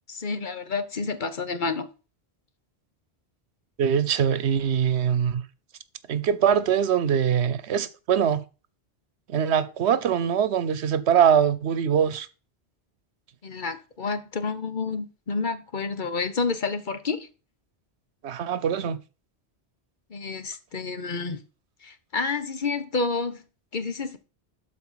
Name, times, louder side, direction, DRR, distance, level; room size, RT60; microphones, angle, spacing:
voice 1, 0.1-1.9 13.4-17.3 20.1-21.4 21.8-23.4 23.7-24.2, left 4 dB, 50° left, 1.1 m, -29 dB
voice 2, 3.8-5.4 6.1-8.4 9.3-12.3 18.2-19.0, right 8 dB, 85° right, 1.0 m, -23 dB
12.0 x 4.3 x 5.7 m
omnidirectional pair, 1.1 m